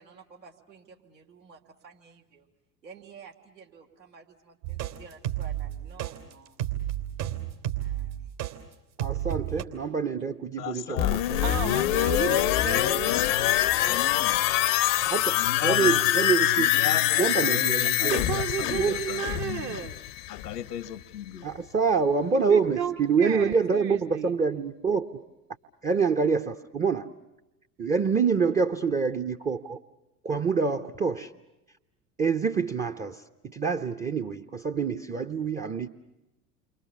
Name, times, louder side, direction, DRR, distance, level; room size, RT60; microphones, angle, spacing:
voice 1, 0.0-2.5 2.8-6.6 7.7-8.3, right 5 dB, 80° right, -1 dB, 3.3 m, -51 dB
sound 1, 4.6-8.5 9.0-9.6, right 12 dB, 60° right, 3.3 m, -31 dB
voice 2, 9.0-11.4 15.1-15.3 15.6-16.7 17.2-18.2 18.7-19.0 21.4-25.2 25.8-27.1 27.8-29.8 30.2-31.3 32.2-33.2 33.4-35.9, right 5 dB, 15° right, 3 dB, 0.8 m, -26 dB
voice 3, 10.6-11.3 12.6-13.3 13.8-14.5 14.9-15.0 15.4-16.1 16.6-19.8 20.3-21.5, left 11 dB, 70° left, 14 dB, 1.0 m, -37 dB
sound 2, 11.0-20.7 21.0-21.1, left 14 dB, 50° left, 0.8 m, -25 dB
voice 4, 11.4-14.0 18.0-19.9 22.3-24.3, right 9 dB, 35° right, 6 dB, 1.1 m, -33 dB
29.5 x 25.0 x 7.1 m, 0.96 s
figure-of-eight pair, 75°, 49 cm